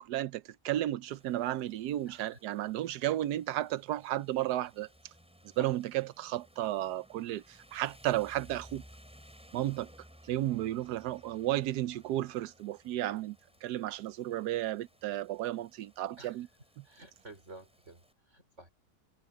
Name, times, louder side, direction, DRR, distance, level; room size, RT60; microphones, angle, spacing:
voice 1, 0.0-4.9 5.6-7.4 7.7-8.8 9.5-9.9 10.3-13.4 13.6-16.5 16.8-16.9, right 14 dB, 90° right, 1.2 m, -33 dB
Rain, 1.1-18.1, equal, 5° right, 5.6 m, -59 dB
voice 2, 2.1-2.4 16.2-16.3 16.8-18.0 18.3-18.7, right 2 dB, 45° right, 5.5 m, -52 dB
omnidirectional pair, 1.7 m